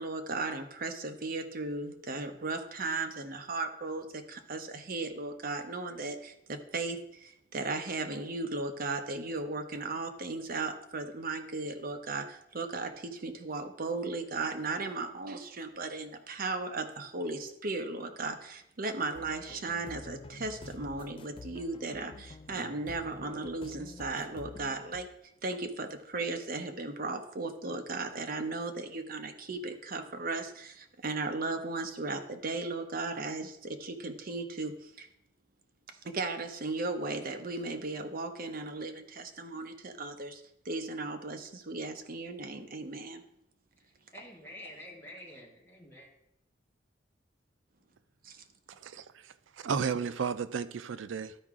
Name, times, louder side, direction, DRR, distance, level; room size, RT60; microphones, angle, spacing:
voice 1, 0.0-25.1 25.4-35.1 36.0-43.2 48.2-48.4, right 3 dB, 50° right, 0.8 m, -36 dB
sound 1, 19.1-25.1, left 3 dB, 25° left, 0.3 m, -48 dB
voice 2, 43.8-46.1, left 1 dB, 10° left, 2.1 m, -49 dB
voice 3, 48.8-51.4, right 6 dB, 90° right, 0.4 m, -34 dB
12.0 x 4.7 x 3.6 m
head